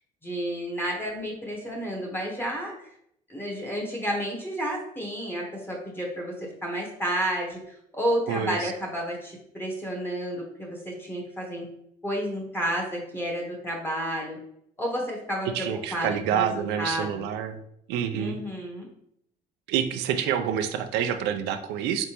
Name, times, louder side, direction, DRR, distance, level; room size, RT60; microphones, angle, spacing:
voice 1, 0.2-2.9 3.3-11.6 12.0-14.4 14.8-17.3 18.1-18.9, equal, 15° left, -1 dB, 1.1 m, -31 dB
voice 2, 8.3-8.7 15.5-17.6 17.9-18.4 19.7-22.0, right 8 dB, 90° right, 8 dB, 0.5 m, -27 dB
3.9 x 3.4 x 3.0 m, 0.71 s
cardioid pair, 110°, 17 cm